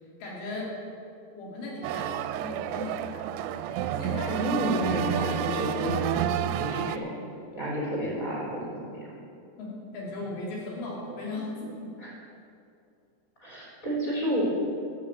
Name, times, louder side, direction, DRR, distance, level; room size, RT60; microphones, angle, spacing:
voice 1, 0.2-0.7 1.3-3.6 3.9-4.6 6.9-7.0 7.5-7.6 9.6-11.9 14.0-14.2, left 2 dB, 80° left, -4 dB, 4.8 m, -37 dB
sound 1, 1.8-7.0, right 10 dB, 90° right, 2.8 m, -30 dB
voice 2, 4.3-7.1 7.5-9.0 13.4-14.4, equal, 20° left, -5 dB, 3.2 m, -30 dB
12.5 x 6.9 x 8.6 m, 2.5 s
omnidirectional pair, 4.9 m